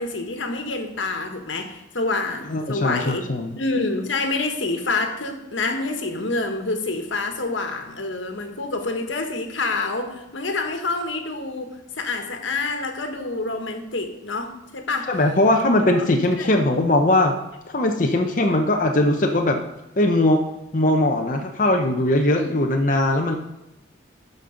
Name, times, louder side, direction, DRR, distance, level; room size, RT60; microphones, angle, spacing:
voice 1, 0.0-3.3 3.6-15.1 16.3-16.5 22.3-22.6, left 3 dB, 80° left, 5 dB, 1.4 m, -27 dB
voice 2, 2.5-3.6 15.1-17.3 17.7-19.6 20.0-20.4 20.7-23.4, left 1 dB, 45° left, 2 dB, 0.8 m, -20 dB
13.0 x 5.4 x 5.1 m, 0.90 s
head